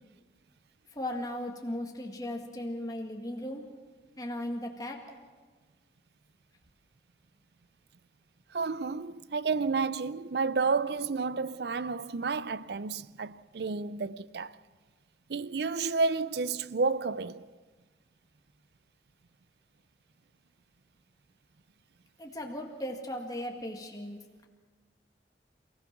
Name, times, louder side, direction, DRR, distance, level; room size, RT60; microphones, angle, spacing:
voice 1, 0.9-3.6 4.2-5.0 22.2-24.2, left 1 dB, 20° left, 2.0 m, -37 dB
voice 2, 8.5-14.6 15.3-17.5, right 4 dB, 65° right, 0.5 m, -31 dB
29.5 x 16.5 x 6.1 m
head